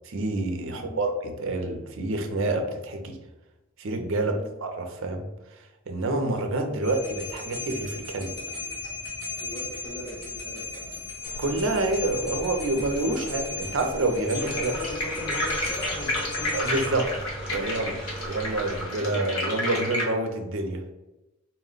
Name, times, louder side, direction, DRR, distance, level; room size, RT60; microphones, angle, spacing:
voice 1, 0.0-3.2 3.8-5.3 5.9-8.4 11.4-14.7 16.5-17.1 17.5-18.0 18.3-20.8, right 2 dB, 65° right, 5 dB, 0.6 m, -27 dB
voice 2, 0.7-1.0 4.2-4.5 9.3-11.0 14.5-17.0 17.5-18.3 18.9-19.4, left 1 dB, 25° left, -4 dB, 1.1 m, -40 dB
sound 1, 6.8-16.9, left 4 dB, 50° left, 1.4 m, -36 dB
sound 2, 11.2-18.9, equal, 5° left, 0.8 m, -40 dB
sound 3, 14.3-20.0, left 1 dB, 85° left, 1.1 m, -31 dB
4.2 x 2.2 x 3.7 m, 1.0 s
head